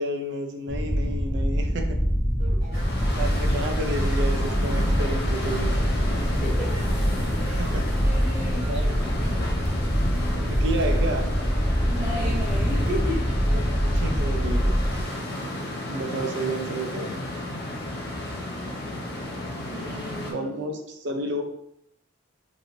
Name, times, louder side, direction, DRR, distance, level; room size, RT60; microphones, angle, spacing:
voice 1, 0.0-2.0 3.2-5.8 7.6-7.9 8.7-8.9 10.4-11.3 13.5-13.7 13.9-14.8 15.9-17.2 20.3-21.4, right 1 dB, 65° right, 3 dB, 0.5 m, -31 dB
sound 1, 0.7-15.0, equal, 20° left, 0.6 m, -24 dB
sound 2, 2.4-9.1, right 1 dB, 85° right, 0.9 m, -44 dB
sound 3, 2.7-20.3, left 1 dB, 60° left, 0.6 m, -33 dB
voice 2, 2.7-3.0 6.4-6.8 7.3-9.3 10.1-10.6 11.8-13.3 16.1-16.6 19.7-20.5, left 1 dB, 35° right, -7 dB, 1.2 m, -35 dB
3.0 x 2.6 x 2.6 m, 0.75 s
head